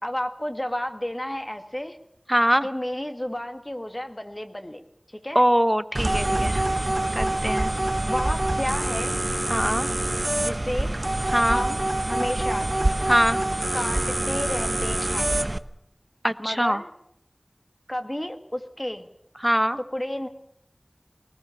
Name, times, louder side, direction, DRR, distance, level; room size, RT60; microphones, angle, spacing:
voice 1, 0.0-2.0 2.6-5.4 8.0-9.2 10.4-11.0 11.5-12.7 13.7-15.3 16.4-16.9 17.9-19.1 19.8-20.3, left 1 dB, 30° left, 7 dB, 2.0 m, -31 dB
voice 2, 2.3-2.7 5.3-6.6 7.1-7.7 9.5-9.9 11.3-11.6 13.1-13.4 16.2-16.8 19.4-19.8, equal, 5° right, 13 dB, 0.9 m, -22 dB
sound 1, 5.9-15.6, right 1 dB, 50° right, 0.9 m, -25 dB
20.5 x 19.5 x 7.1 m, 0.76 s
wide cardioid pair, 40°, 0 cm